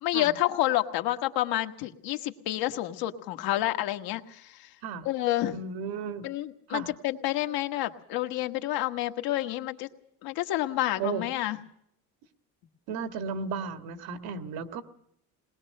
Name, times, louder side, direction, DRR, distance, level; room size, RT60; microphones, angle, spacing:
voice 1, 0.0-4.7 5.0-5.5 6.2-9.9 10.2-11.6, left 15 dB, 80° left, 7 dB, 1.4 m, -29 dB
voice 2, 5.5-6.3 6.7-6.9 11.0-11.2 12.9-14.8, right 6 dB, 85° right, 8 dB, 1.9 m, -34 dB
20.5 x 20.0 x 6.6 m, 0.72 s
cardioid pair, 170°, 36 cm